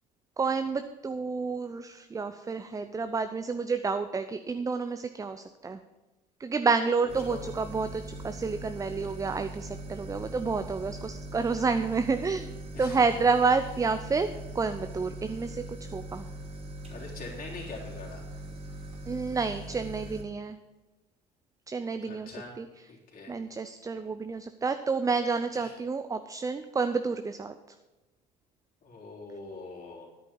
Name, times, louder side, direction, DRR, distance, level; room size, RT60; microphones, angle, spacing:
voice 1, 0.4-5.8 6.4-12.5 12.8-14.3 14.5-15.6 15.9-16.2 19.1-20.6 21.7-22.7 23.3-27.5, right 4 dB, 15° right, 9 dB, 0.6 m, -29 dB
voice 2, 7.0-7.5 12.7-13.0 16.9-18.2 22.0-22.6 22.9-23.3 25.5-25.8 28.8-30.1, left 3 dB, 40° left, -3 dB, 3.5 m, -43 dB
sound 1, 7.1-20.2, right 1 dB, 30° right, 2.8 m, -41 dB
10.5 x 8.5 x 5.4 m, 1.1 s
hypercardioid pair, 65°, 21 cm